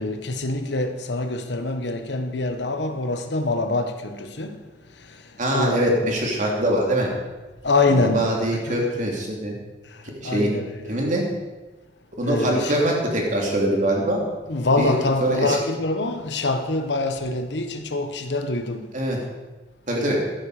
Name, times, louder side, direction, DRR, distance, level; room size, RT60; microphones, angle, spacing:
voice 1, 0.0-4.6 5.5-5.9 7.6-8.2 8.7-8.8 10.2-10.9 12.2-12.8 14.5-18.8, left 2 dB, 80° left, 1.1 m, -24 dB
voice 2, 5.4-7.1 7.9-9.5 10.0-10.5 10.9-11.2 12.2-14.2 14.8-15.0 15.2-15.6 18.9-19.2 19.9-20.2, right 1 dB, 45° right, 2.9 m, -23 dB
13.5 x 10.5 x 5.0 m
head